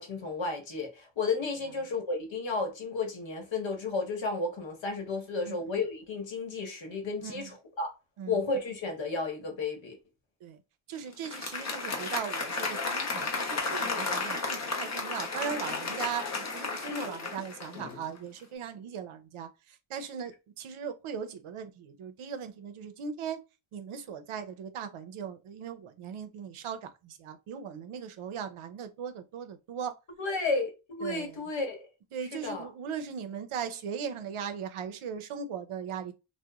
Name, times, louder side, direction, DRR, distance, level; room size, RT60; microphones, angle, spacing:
voice 1, 0.0-7.9 8.3-10.0 30.2-31.9 32.3-32.7, left 3 dB, 65° left, 1.0 m, -32 dB
voice 2, 10.9-23.4 23.7-30.0 31.0-31.4 32.1-36.1, right 7 dB, 85° right, 0.6 m, -38 dB
Applause, 11.1-18.1, left 3 dB, 35° left, 0.5 m, -33 dB
2.8 x 2.1 x 2.2 m
wide cardioid pair, 150°, 48 cm